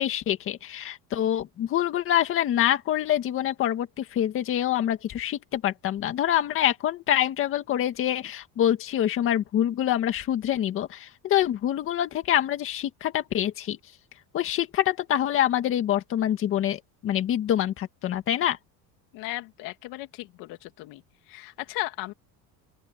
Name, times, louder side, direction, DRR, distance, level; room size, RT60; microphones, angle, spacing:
voice 1, 0.0-13.8 14.3-18.6, left 11 dB, 35° left, 1.9 m, -26 dB
voice 2, 19.1-21.0 21.3-22.1, left 18 dB, 65° left, 2.5 m, -36 dB
open air
cardioid pair, 175°, 37 cm